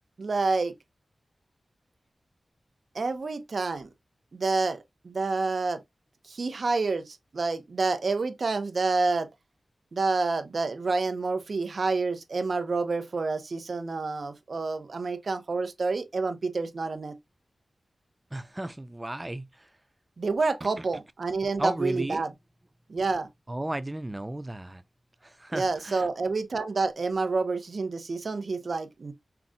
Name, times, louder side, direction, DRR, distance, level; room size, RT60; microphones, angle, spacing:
voice 1, 0.2-0.7 2.9-3.9 4.3-5.8 6.2-9.3 9.9-17.1 20.2-22.3 22.9-23.3 25.5-29.1, right 3 dB, 65° right, 0.9 m, -28 dB
voice 2, 18.3-19.8 21.6-22.2 23.5-24.8 25.2-26.1, right 1 dB, 20° right, 0.5 m, -34 dB
5.8 x 3.8 x 2.3 m
wide cardioid pair, 70°, 0 cm